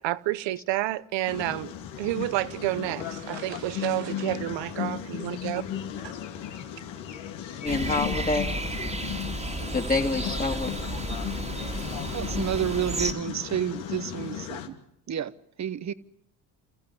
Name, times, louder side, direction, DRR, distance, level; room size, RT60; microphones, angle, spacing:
voice 1, 0.0-5.6 6.0-6.1, right 16 dB, 65° right, 1.1 m, -30 dB
sound 1, 1.3-14.7, left 10 dB, 70° left, 2.8 m, -36 dB
voice 2, 7.6-8.5 9.7-10.7, left 3 dB, 20° left, 2.6 m, -27 dB
sound 2, 7.7-13.1, right 2 dB, 15° right, 2.3 m, -33 dB
voice 3, 12.1-14.8 15.1-15.3 15.6-15.9, right 9 dB, 35° right, 1.1 m, -30 dB
28.5 x 14.5 x 9.7 m
supercardioid pair, 70°, 47 cm